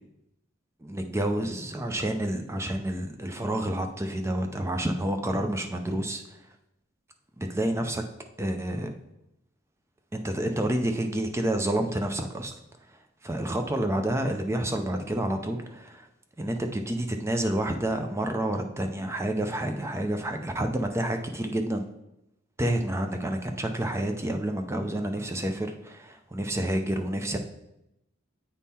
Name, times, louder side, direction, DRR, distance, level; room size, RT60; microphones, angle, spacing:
voice 1, 0.8-6.2 7.4-8.0 8.4-8.9 10.1-12.5 13.2-16.1 16.4-21.8 22.6-27.4, right 1 dB, 15° right, 5 dB, 0.5 m, -29 dB
8.4 x 3.7 x 4.2 m, 0.85 s
head